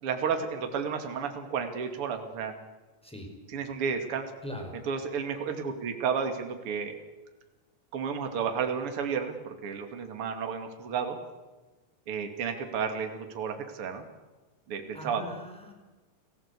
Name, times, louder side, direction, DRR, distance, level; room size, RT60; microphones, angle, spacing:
voice 1, 0.0-2.5 3.5-4.3 4.8-7.0 7.9-11.2 12.1-14.1 14.7-15.3, right 6 dB, 45° right, 5 dB, 3.0 m, -32 dB
voice 2, 4.4-4.8 14.9-15.7, equal, ahead, 2 dB, 5.0 m, -40 dB
29.5 x 18.0 x 8.4 m, 1.2 s
omnidirectional pair, 3.7 m